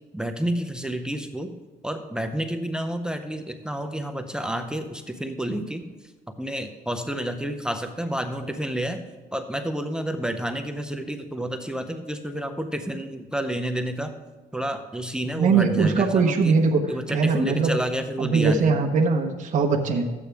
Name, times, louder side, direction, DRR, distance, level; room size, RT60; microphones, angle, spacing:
voice 1, 0.1-1.5 1.8-6.1 6.4-9.0 9.3-14.1 14.5-16.6 16.9-18.8, right 1 dB, 5° right, 8 dB, 0.6 m, -30 dB
voice 2, 15.3-16.8 17.1-17.8 18.2-20.0, right 4 dB, 45° right, 1 dB, 1.2 m, -21 dB
13.5 x 8.4 x 3.5 m, 1.2 s
cardioid pair, 110°, 17 cm